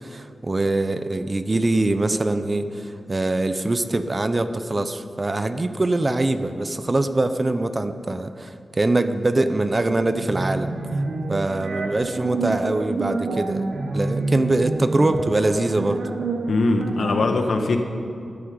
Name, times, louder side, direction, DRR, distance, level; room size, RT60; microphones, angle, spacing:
voice 1, 0.0-10.7 11.3-13.6 13.9-16.0, right 2 dB, 30° right, 9 dB, 0.8 m, -23 dB
sound 1, 10.1-17.2, right 3 dB, 80° right, 1.4 m, -28 dB
voice 2, 16.5-17.8, left 3 dB, 80° left, 4 dB, 1.5 m, -21 dB
13.5 x 10.5 x 9.6 m, 2.6 s
wide cardioid pair, 110°, 0 cm